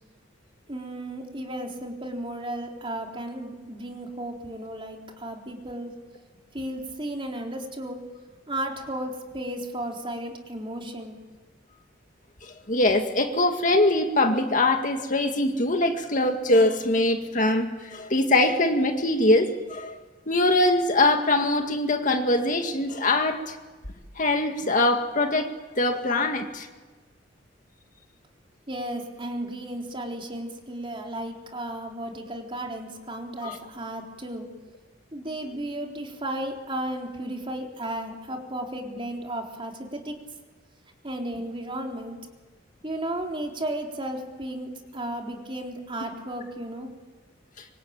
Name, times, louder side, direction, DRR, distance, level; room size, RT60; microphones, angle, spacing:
voice 1, 0.7-5.9 6.5-8.0 8.5-11.2 28.7-34.5 35.1-40.2 41.0-42.2 42.8-46.9, right 1 dB, 25° right, 1 dB, 3.9 m, -34 dB
voice 2, 12.4-20.0 20.3-23.6 24.2-26.7 33.4-33.6, left 2 dB, 45° left, 4 dB, 2.0 m, -23 dB
25.5 x 25.0 x 9.0 m, 1.3 s
head